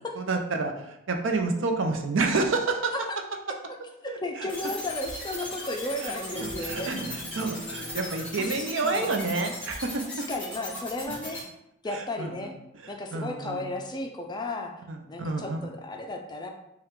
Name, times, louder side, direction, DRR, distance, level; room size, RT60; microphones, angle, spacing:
voice 1, 0.2-0.7 1.1-2.9 4.1-4.5 6.0-6.1 6.6-10.0 11.9-12.5 13.1-13.7 14.9-15.6, right 3 dB, 75° right, 5 dB, 0.6 m, -29 dB
voice 2, 4.0-7.0 8.4-9.1 10.3-11.5 11.8-12.5 12.9-14.7 15.1-16.5, left 2 dB, 20° left, 3 dB, 0.4 m, -34 dB
sound 1, 4.5-11.4, left 1 dB, 5° left, 1.1 m, -38 dB
sound 2, 6.3-9.3, left 1 dB, 30° right, 0.9 m, -42 dB
5.6 x 2.4 x 3.6 m, 0.83 s
head